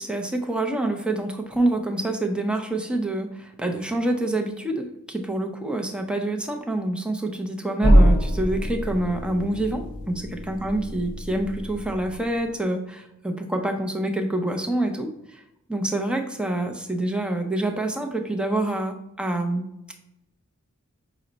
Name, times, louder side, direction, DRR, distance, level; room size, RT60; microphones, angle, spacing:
voice 1, 0.0-15.4 15.7-19.7, right 1 dB, 5° right, 3 dB, 0.5 m, -27 dB
sound 1, 7.8-12.5, equal, 35° left, 0.8 m, -23 dB
5.4 x 2.1 x 3.8 m, 0.85 s
head